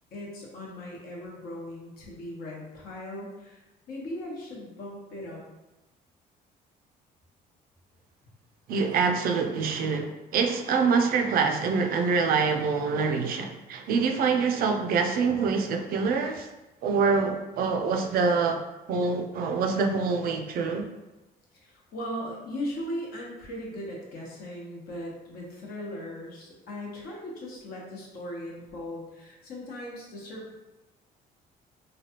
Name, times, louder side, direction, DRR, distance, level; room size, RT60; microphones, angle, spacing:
voice 1, 0.1-3.6 3.9-5.4 21.5-30.5, left 1 dB, 65° left, 1.0 m, -38 dB
voice 2, 8.7-16.5 16.8-18.6 18.9-20.9, right 5 dB, 60° right, 0.4 m, -25 dB
3.2 x 2.3 x 2.8 m
cardioid pair, 110°, 17 cm